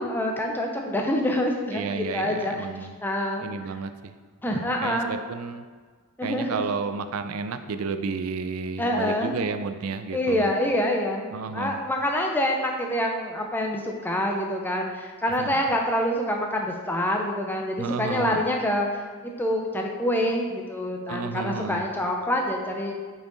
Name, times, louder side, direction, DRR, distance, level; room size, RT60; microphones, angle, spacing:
voice 1, 0.0-2.7 3.0-3.5 4.4-5.1 6.2-6.6 8.8-9.4 10.1-22.9, left 1 dB, 10° left, 1 dB, 0.5 m, -26 dB
voice 2, 1.7-3.0 3.4-4.2 4.5-5.6 6.2-10.5 11.3-11.8 15.4-15.6 17.8-18.5 21.1-21.8, right 4 dB, 75° right, 9 dB, 0.4 m, -32 dB
5.7 x 4.5 x 3.8 m, 1.5 s
head